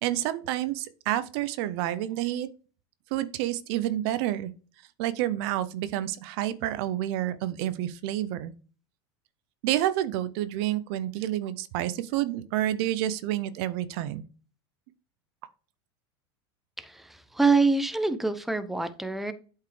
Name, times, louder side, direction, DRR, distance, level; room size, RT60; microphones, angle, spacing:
voice 1, 0.0-2.5 3.1-4.5 5.0-8.5 9.6-14.2, right 13 dB, 65° right, 15 dB, 0.6 m, -29 dB
voice 2, 16.8-19.3, right 3 dB, ahead, 11 dB, 0.7 m, -25 dB
8.3 x 4.6 x 3.2 m, 0.37 s
supercardioid pair, 110°, 14 cm